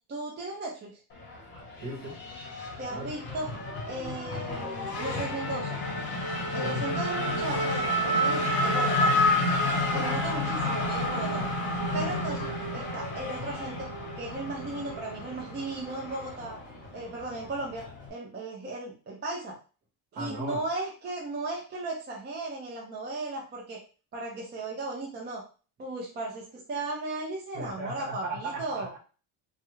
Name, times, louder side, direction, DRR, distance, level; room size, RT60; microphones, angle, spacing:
voice 1, 0.1-0.9 2.8-3.5 3.9-5.8 6.5-9.2 9.9-11.5 11.9-13.9 14.2-16.6 16.9-17.8 18.1-19.6 20.1-23.8 24.1-25.4 25.8-28.9, right 2 dB, 25° right, -1 dB, 0.4 m, -36 dB
Race car auto racing / Accelerating revving vroom, 1.1-18.1, left 1 dB, 25° left, 1.0 m, -30 dB
voice 2, 1.8-2.2 2.9-3.1 6.6-6.9 9.9-10.1 20.2-20.6 27.5-29.0, right 1 dB, 55° right, -1 dB, 1.6 m, -37 dB
3.2 x 2.4 x 3.0 m, 0.36 s
cardioid pair, 175°, 46 cm